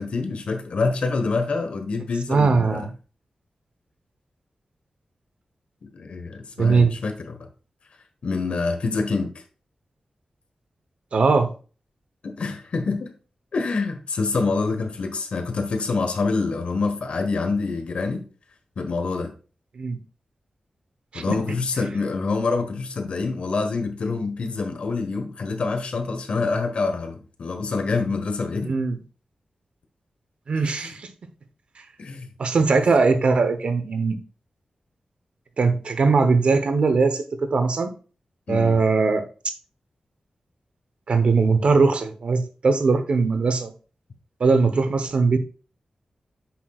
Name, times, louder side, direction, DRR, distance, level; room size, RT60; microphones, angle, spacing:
voice 1, 0.0-2.9 5.8-7.5 8.2-9.3 12.2-13.1 13.5-18.2 18.8-19.3 21.1-28.7 30.7-30.8 32.0-32.3 38.5-38.8, left 4 dB, 70° left, 1.3 m, -26 dB
voice 2, 2.3-2.9 6.6-7.0 11.1-11.5 19.8-20.0 21.1-21.3 28.6-29.0 30.5-31.1 32.4-34.2 35.6-37.9 38.5-39.2 41.1-43.7 44.4-45.4, right 4 dB, 65° right, 0.9 m, -20 dB
8.2 x 6.1 x 2.4 m
wide cardioid pair, 85°, 2 cm